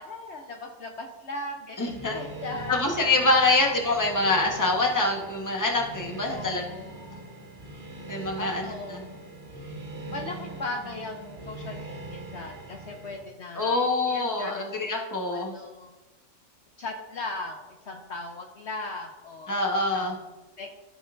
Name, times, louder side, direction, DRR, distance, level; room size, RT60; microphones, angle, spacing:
voice 1, 0.0-3.0 3.4-3.8 6.3-7.4 8.4-9.2 10.1-14.7 15.0-15.9 16.8-19.6 19.9-20.7, left 2 dB, 60° left, 3 dB, 0.9 m, -38 dB
voice 2, 1.8-2.1 2.7-6.6 8.1-8.6 13.6-15.5 19.5-20.1, left 2 dB, 15° left, 1 dB, 1.0 m, -25 dB
sound 1, 1.9-13.2, right 2 dB, 45° right, 1.5 m, -41 dB
15.5 x 5.4 x 2.5 m, 1.1 s
omnidirectional pair, 1.4 m